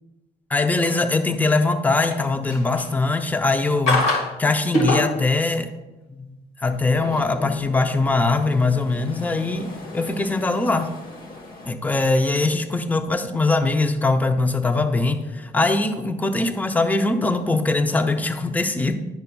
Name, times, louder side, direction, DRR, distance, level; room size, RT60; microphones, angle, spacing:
sound 1, 0.5-1.5 1.9-3.1 3.9-4.3 4.7-5.3 6.7-18.3, left 1 dB, 85° left, 1.6 m, -32 dB
voice 1, 0.5-4.0 4.4-5.7 6.1-10.9 11.7-18.9, left 3 dB, 10° left, 8 dB, 0.5 m, -22 dB
sound 2, 6.6-11.7, left 2 dB, 60° left, 1.0 m, -42 dB
10.5 x 5.4 x 2.2 m, 1.1 s
cardioid pair, 110°, 17 cm